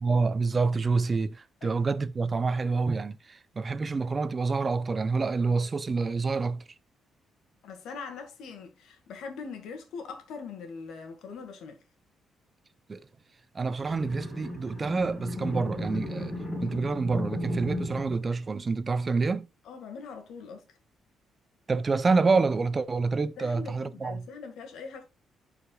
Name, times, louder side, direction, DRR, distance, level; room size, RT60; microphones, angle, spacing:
voice 1, 0.0-6.6 12.9-13.0 13.5-16.3 16.6-19.5 21.7-24.2, right 4 dB, 35° right, 0.7 m, -27 dB
voice 2, 7.6-11.8 19.6-20.6 23.4-25.0, left 5 dB, 80° left, 2.0 m, -42 dB
sound 1, 13.8-18.2, left 1 dB, 20° left, 4.4 m, -35 dB
11.0 x 5.1 x 2.4 m
cardioid pair, 90°, 0 cm